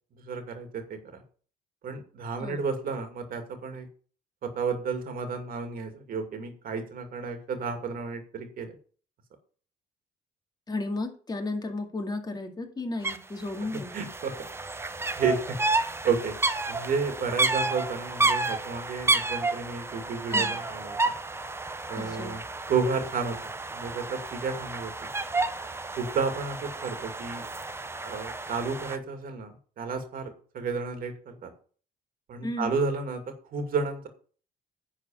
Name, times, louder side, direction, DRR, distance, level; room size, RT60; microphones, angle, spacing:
voice 1, 0.2-1.2 1.8-3.9 4.4-8.8 13.9-14.5 15.2-15.6 16.0-16.3 16.7-21.1 21.9-22.4 22.7-25.1 26.0-27.5 28.0-31.5 32.3-33.2 33.5-34.1, right 5 dB, 55° right, 6 dB, 2.4 m, -32 dB
voice 2, 10.7-13.9 20.3-20.5 22.0-22.3 32.4-32.7, left 2 dB, 25° left, 3 dB, 2.3 m, -33 dB
sound 1, 13.0-13.2 13.4-29.0, right 3 dB, 15° right, 0.8 m, -31 dB
10.5 x 4.4 x 7.0 m, 0.43 s
cardioid pair, 100°, 17 cm